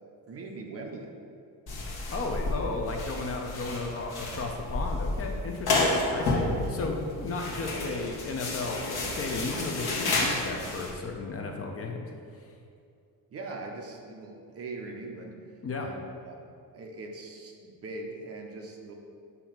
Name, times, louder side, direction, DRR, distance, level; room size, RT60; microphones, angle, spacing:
voice 1, 0.3-1.1 13.3-15.4 15.8-16.4 16.7-18.9, right 3 dB, 40° right, 1 dB, 0.6 m, -41 dB
sound 1, 1.7-10.9, left 2 dB, 75° left, 1.3 m, -31 dB
voice 2, 2.1-8.9 9.2-12.1 12.5-12.6 15.6-15.9, left 3 dB, 40° left, 2 dB, 0.5 m, -34 dB
7.0 x 2.7 x 5.7 m, 2.4 s
cardioid pair, 175°, 38 cm